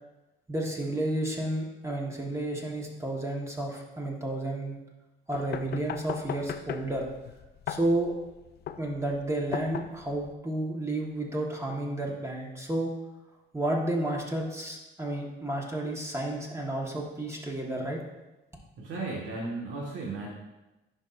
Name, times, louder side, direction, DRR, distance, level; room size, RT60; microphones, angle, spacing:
voice 1, 0.5-4.8 5.3-7.1 7.7-8.1 8.8-12.9 13.5-18.0, right 1 dB, 15° right, -2 dB, 1.5 m, -31 dB
sound 1, 5.3-10.3, left 9 dB, 55° left, 0.4 m, -38 dB
voice 2, 18.8-20.3, right 3 dB, 80° right, -4 dB, 1.7 m, -35 dB
10.5 x 5.4 x 2.6 m, 1.0 s
cardioid pair, 90°, 20 cm